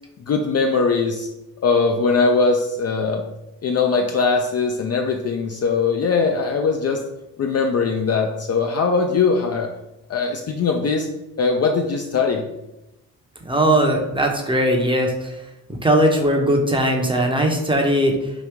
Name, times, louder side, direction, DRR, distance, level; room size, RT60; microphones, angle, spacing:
voice 1, 0.3-1.3 1.6-3.2 3.6-7.0 7.4-9.7 10.1-11.1 11.4-12.4, left 4 dB, 40° left, 3 dB, 0.4 m, -20 dB
voice 2, 13.4-15.4 15.8-18.3, right 1 dB, 10° right, 1 dB, 0.7 m, -19 dB
3.1 x 2.6 x 3.4 m, 0.92 s
supercardioid pair, 55°, 42 cm